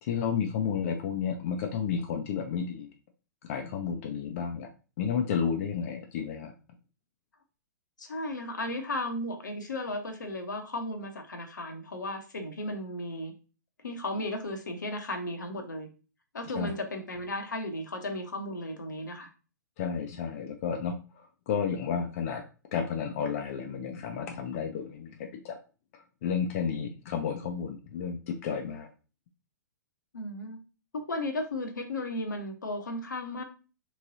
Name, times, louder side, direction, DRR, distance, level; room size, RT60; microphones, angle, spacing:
voice 1, 0.0-2.9 3.4-4.7 5.0-6.5 16.5-16.7 19.8-22.4 22.7-25.6 26.2-28.9, left 7 dB, 45° left, 4 dB, 0.5 m, -32 dB
voice 2, 8.0-13.3 13.8-15.9 16.3-19.3 30.1-30.6 30.9-33.4, left 1 dB, 75° left, 6 dB, 0.8 m, -35 dB
3.6 x 3.1 x 2.7 m, 0.34 s
figure-of-eight pair, 110°, 10 cm